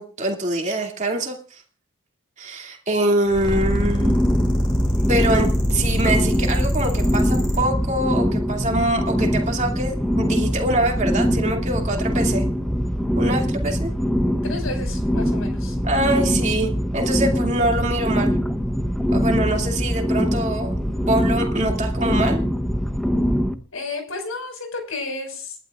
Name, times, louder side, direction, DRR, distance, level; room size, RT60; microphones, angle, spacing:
voice 1, 0.0-1.6 2.4-4.2 5.1-12.4 13.2-13.9 15.8-18.3 19.1-22.4, right 1 dB, 35° right, 2 dB, 2.5 m, -24 dB
sound 1, 3.3-7.6, equal, 20° left, 6.9 m, -23 dB
sound 2, 3.5-23.5, equal, ahead, 0.7 m, -23 dB
voice 2, 14.4-15.8 23.7-25.6, left 3 dB, 80° left, 4 dB, 5.5 m, -32 dB
29.0 x 11.5 x 2.5 m, 0.43 s
head